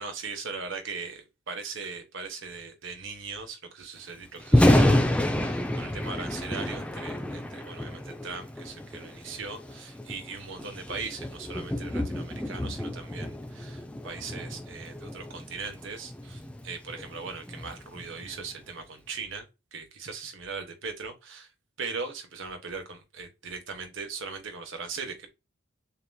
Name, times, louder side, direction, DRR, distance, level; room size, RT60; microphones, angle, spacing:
voice 1, 0.0-21.5 21.8-25.3, right 4 dB, 65° right, 1.2 m, -39 dB
Thunder, 4.4-18.5, left 1 dB, 5° left, 0.5 m, -29 dB
6.7 x 2.9 x 2.2 m
head